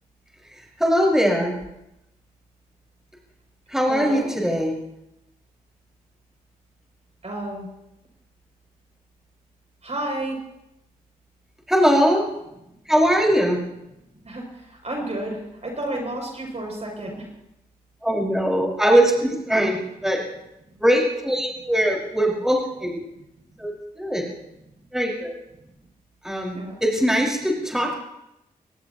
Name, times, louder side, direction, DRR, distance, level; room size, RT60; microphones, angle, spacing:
voice 1, 0.8-1.6 3.7-4.8 11.7-12.2 12.9-13.6 18.0-20.2 20.8-23.0 23.6-24.2 24.9-25.3 26.2-27.9, equal, 5° right, -2 dB, 5.6 m, -21 dB
voice 2, 3.9-4.3 7.2-7.7 9.8-10.4 14.2-17.3 26.6-26.7, right 1 dB, 45° right, 0 dB, 7.0 m, -31 dB
24.5 x 18.5 x 3.0 m, 0.87 s
supercardioid pair, 45°, 16 cm